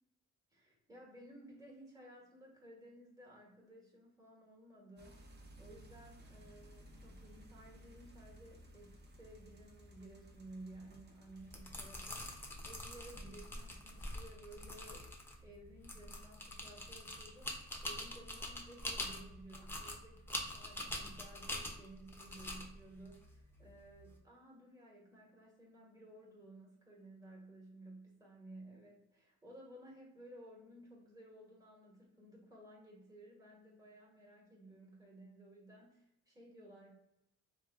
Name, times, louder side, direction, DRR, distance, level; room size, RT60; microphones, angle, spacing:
voice 1, 0.5-5.2 5.6-15.1 15.4-37.0, right 1 dB, 10° right, -4 dB, 1.3 m, -56 dB
sound 1, 5.0-15.9 16.3-16.9, right 1 dB, 35° right, 0.7 m, -59 dB
sound 2, 11.4-24.1, left 1 dB, 10° left, 0.6 m, -45 dB
3.0 x 2.3 x 3.4 m, 0.83 s
cardioid pair, 90°, 30 cm